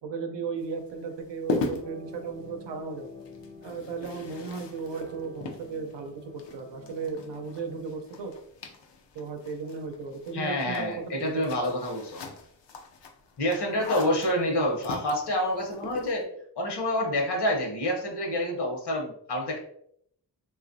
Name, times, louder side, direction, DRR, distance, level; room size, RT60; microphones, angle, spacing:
voice 1, 0.0-3.1 3.6-8.3 9.1-11.8, right 4 dB, 85° right, 5 dB, 0.6 m, -36 dB
sound 1, 0.6-16.2, left 3 dB, 85° left, 0.5 m, -40 dB
sound 2, 1.8-7.8, left 2 dB, 5° left, 0.5 m, -49 dB
voice 2, 10.3-12.2 13.4-16.3 16.6-19.6, left 1 dB, 70° left, 1 dB, 0.9 m, -28 dB
2.9 x 2.4 x 2.6 m, 0.69 s
wide cardioid pair, 85°, 42 cm